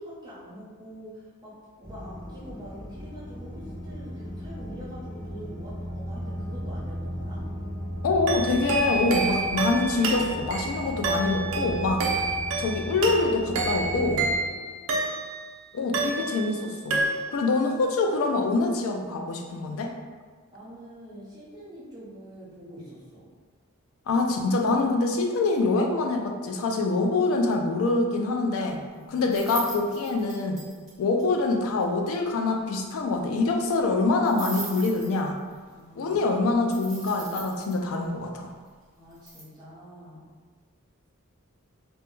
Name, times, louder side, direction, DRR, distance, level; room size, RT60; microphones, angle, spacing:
voice 1, 0.0-1.5 1.8-7.4 14.5-14.9 15.9-16.5 20.5-23.3 28.8-29.3 35.7-36.3 39.0-40.3, equal, 20° right, -8 dB, 0.6 m, -45 dB
sound 1, 1.8-14.4, equal, 35° left, 0.7 m, -36 dB
voice 2, 8.0-12.0 12.6-14.2 15.7-17.0 17.3-19.9 24.1-28.8 29.1-30.6 31.0-35.4 36.0-38.5, left 3 dB, 70° left, 3 dB, 0.3 m, -25 dB
sound 2, 8.3-15.5 15.9-16.6 16.9-17.5, right 3 dB, 65° right, 0.3 m, -29 dB
sound 3, 29.2-30.9 31.2-31.3 31.5-31.6 31.8-31.9 32.1-32.2 34.3-35.5 36.7-37.7 39.1-39.4, right 2 dB, ahead, 1.1 m, -39 dB
2.1 x 2.1 x 3.0 m, 1.5 s
head